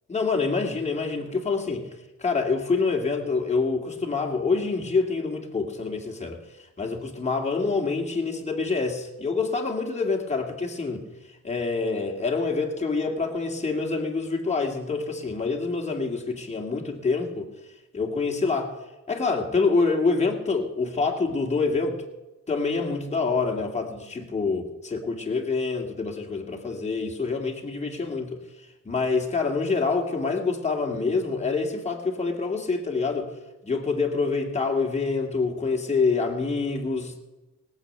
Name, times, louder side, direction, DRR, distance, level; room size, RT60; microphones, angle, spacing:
voice 1, 0.1-1.9 2.2-6.4 6.8-17.5 17.9-18.7 19.1-22.0 22.5-33.3 33.6-37.2, left 4 dB, 20° left, 1 dB, 2.1 m, -26 dB
18.0 x 7.5 x 6.6 m, 1.1 s
cardioid pair, 90°, 30 cm